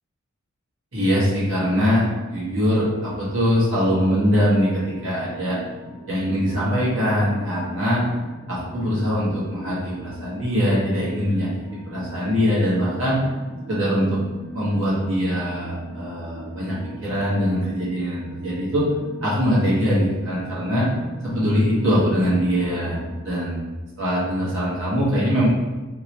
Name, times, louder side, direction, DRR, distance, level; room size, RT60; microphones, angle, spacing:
voice 1, 0.9-5.6 6.1-8.0 8.5-13.2 13.7-14.2 14.5-18.8 19.2-20.9 21.2-23.6 24.0-25.5, equal, 60° right, -8 dB, 1.2 m, -22 dB
sound 1, 4.3-23.2, right 1 dB, ahead, 0.5 m, -40 dB
3.1 x 2.9 x 2.8 m, 1.2 s
head